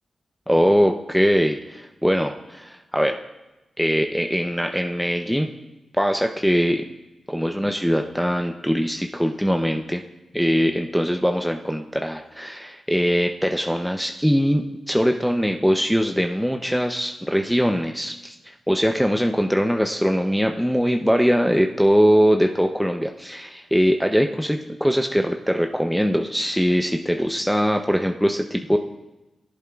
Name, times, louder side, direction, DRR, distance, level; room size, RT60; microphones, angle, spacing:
voice 1, 0.5-3.2 3.8-5.5 5.9-6.9 7.3-10.0 10.3-28.8, equal, ahead, 4 dB, 0.6 m, -21 dB
18.0 x 7.9 x 2.3 m, 1.0 s
cardioid pair, 55°, 0 cm